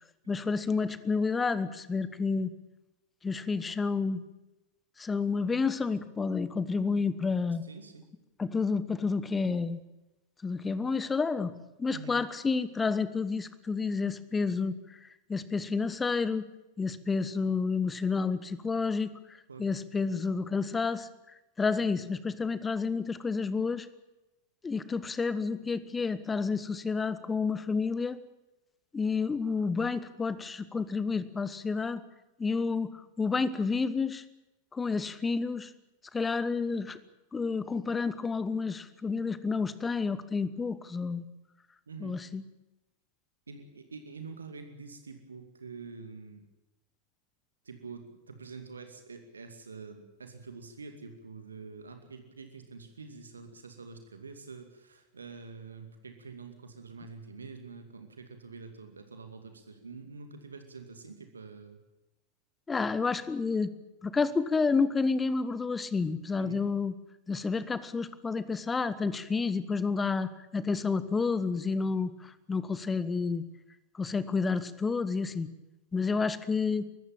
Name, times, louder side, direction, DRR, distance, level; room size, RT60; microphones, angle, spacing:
voice 1, 0.3-2.5 3.2-4.2 5.0-7.6 8.4-9.8 10.4-14.7 15.3-16.5 16.8-19.1 19.6-21.1 21.6-23.9 24.6-28.2 28.9-32.0 32.4-34.2 34.7-35.7 36.1-37.0 37.3-41.2 42.0-42.4 62.7-63.7 64.0-66.9 67.3-73.4 74.0-75.5 75.9-76.9, left 4 dB, 15° left, 16 dB, 1.2 m, -30 dB
voice 2, 7.6-8.1 11.9-12.2 19.5-19.6 41.9-42.2 43.5-46.4 47.7-61.8 66.4-66.7, right 4 dB, 75° right, 6 dB, 2.3 m, -46 dB
24.0 x 14.5 x 8.9 m, 0.99 s
figure-of-eight pair, 90°, 0 cm